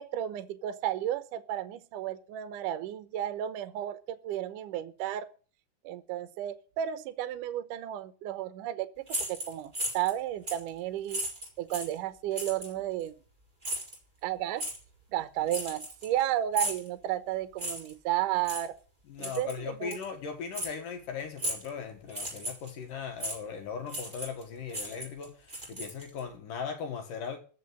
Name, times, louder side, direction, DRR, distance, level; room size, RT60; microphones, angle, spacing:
voice 1, 0.0-5.3 5.8-8.9 9.3-11.2 11.6-13.1 14.2-14.7 15.1-18.7 19.2-20.0, right 12 dB, 75° right, 2.0 m, -33 dB
sound 1, 9.1-10.2 10.5-10.7 11.1-12.0 12.4-12.7 13.6-14.0 14.6-14.8 15.5-16.2 16.5-16.9 17.6-17.9 18.4-18.7 19.2-19.6 19.9-20.0 20.5-20.7 21.4-21.7 22.1-22.7 23.2-23.4 23.9-24.4 24.7-26.2, right 1 dB, 10° right, 4.4 m, -35 dB
voice 2, 19.1-27.4, left 6 dB, 60° left, 2.8 m, -38 dB
14.0 x 5.8 x 9.6 m
omnidirectional pair, 4.7 m